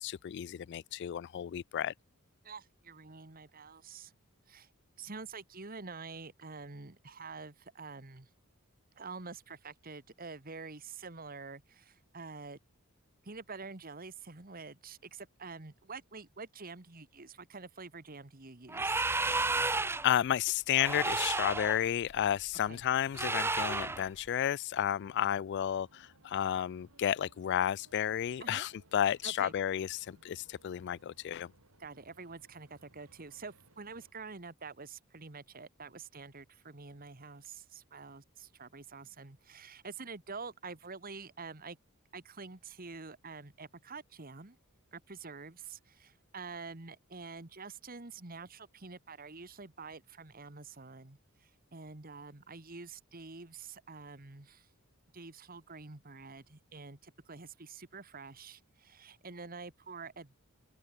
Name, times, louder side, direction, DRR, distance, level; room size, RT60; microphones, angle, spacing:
voice 1, 0.0-1.9 20.0-31.5, left 10 dB, 50° left, 0.3 m, -32 dB
voice 2, 2.4-4.1 4.5-4.7 5.0-8.3 9.0-12.6 13.2-19.1 22.7-22.8 28.4-28.7 29.2-29.5 31.8-41.8 42.1-44.6 44.9-54.7 55.1-60.4, right 4 dB, 40° right, 1.7 m, -47 dB
sound 1, 18.7-20.2 20.8-21.8 23.1-24.0, right 3 dB, 10° right, 0.6 m, -32 dB
sound 2, 24.8-34.1, right 2 dB, 85° right, 5.9 m, -65 dB
open air
head